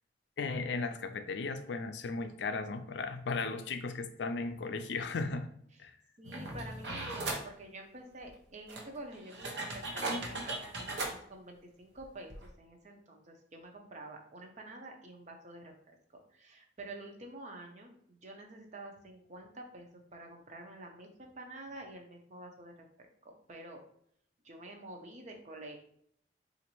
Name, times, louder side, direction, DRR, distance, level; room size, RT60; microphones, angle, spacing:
voice 1, 0.4-5.5 5.8-5.9, left 4 dB, 80° left, 8 dB, 0.4 m, -36 dB
voice 2, 6.2-12.3 12.6-15.7 16.3-22.9 23.5-23.8 24.4-25.9, right 1 dB, 40° right, 2 dB, 0.6 m, -48 dB
sound 1, 6.2-7.5 8.3-8.4 8.7-11.1 12.0-12.1 12.3-12.5, right 2 dB, 75° right, 0.8 m, -38 dB
4.0 x 2.5 x 3.0 m, 0.67 s
head